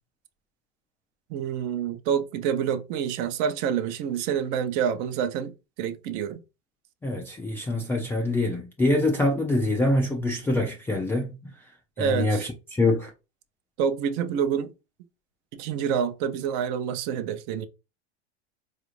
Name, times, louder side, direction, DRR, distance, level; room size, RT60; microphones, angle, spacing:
voice 1, 1.3-6.4 12.0-12.5 13.8-14.7 15.5-17.7, right 8 dB, 45° right, 0.6 m, -27 dB
voice 2, 7.0-11.3 12.0-13.1, left 2 dB, 5° left, 0.3 m, -25 dB
4.0 x 2.5 x 3.1 m
hypercardioid pair, 105°, 33 cm